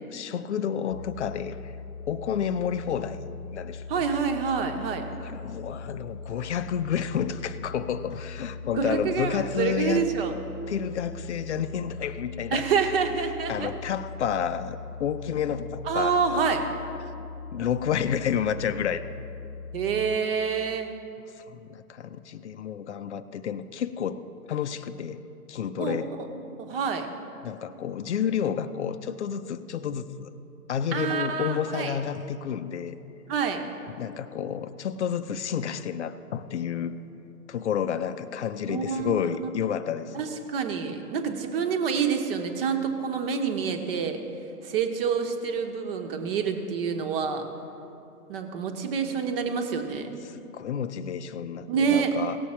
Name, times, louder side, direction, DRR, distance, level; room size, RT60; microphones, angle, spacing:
voice 1, 0.1-1.7 2.1-3.2 3.5-3.8 5.2-10.0 10.7-12.6 13.5-16.4 17.5-19.1 21.5-24.2 24.5-25.2 25.5-26.1 27.4-30.3 30.7-33.0 34.0-37.0 37.5-40.2 50.2-52.4, left 8 dB, 50° left, 11 dB, 0.6 m, -30 dB
sound 1, 0.9-20.2, left 4 dB, 75° left, 0.8 m, -40 dB
voice 2, 3.9-5.0 8.7-10.3 12.5-13.7 15.8-16.7 19.7-20.9 25.8-27.1 30.9-32.0 33.3-33.6 38.7-39.5 40.1-44.2 44.6-47.4 48.3-50.1 51.7-52.1, right 6 dB, 35° right, 5 dB, 1.2 m, -27 dB
18.0 x 7.0 x 4.4 m, 2.7 s
hypercardioid pair, 140°, 47 cm